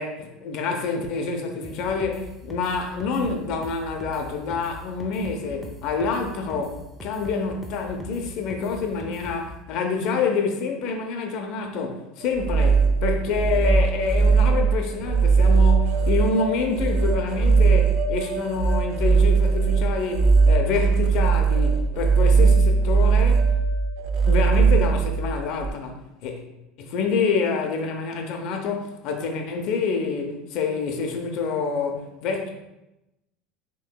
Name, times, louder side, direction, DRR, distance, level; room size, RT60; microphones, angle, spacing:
voice 1, 0.0-23.5 24.2-26.4 26.8-32.5, left 4 dB, 50° left, 3 dB, 0.6 m, -27 dB
sound 1, 1.6-9.5, left 1 dB, 10° left, 0.5 m, -40 dB
sound 2, 12.2-25.7, right 5 dB, 55° right, 0.5 m, -19 dB
6.5 x 3.0 x 2.2 m, 0.94 s
cardioid pair, 160°, 0 cm